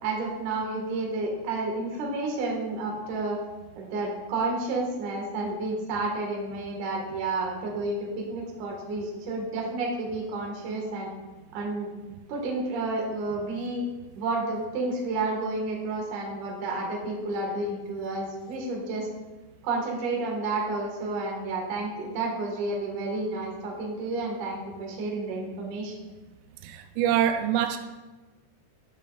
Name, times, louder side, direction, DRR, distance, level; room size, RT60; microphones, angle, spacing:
voice 1, 0.0-3.4 3.8-11.1 11.5-11.9 12.3-13.8 14.2-19.1 19.6-25.9, right 2 dB, 55° right, -1 dB, 2.4 m, -30 dB
voice 2, 26.6-27.8, right 10 dB, 90° right, 7 dB, 3.1 m, -25 dB
15.5 x 5.6 x 2.4 m, 1.2 s
omnidirectional pair, 5.5 m